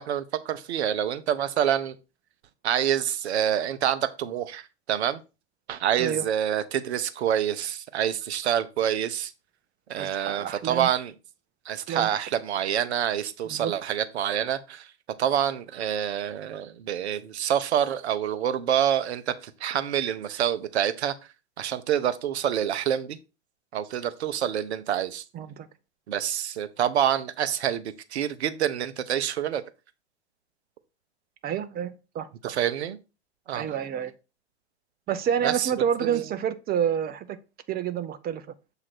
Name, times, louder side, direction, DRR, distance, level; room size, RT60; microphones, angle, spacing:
voice 1, 0.0-2.0 2.6-5.2 5.7-9.3 9.9-11.1 11.7-14.9 15.2-21.1 21.6-23.2 23.7-25.2 26.1-29.6 32.4-33.0 33.5-33.7 35.4-35.7 36.0-36.2, right 10 dB, 70° right, 0.9 m, -27 dB
voice 2, 10.0-10.9 11.9-12.1 13.4-13.7 25.3-25.7 31.4-32.3 33.5-34.1 35.1-37.3 37.7-38.4, right 8 dB, 25° right, 0.8 m, -28 dB
7.5 x 2.9 x 6.0 m
hypercardioid pair, 95°, 34 cm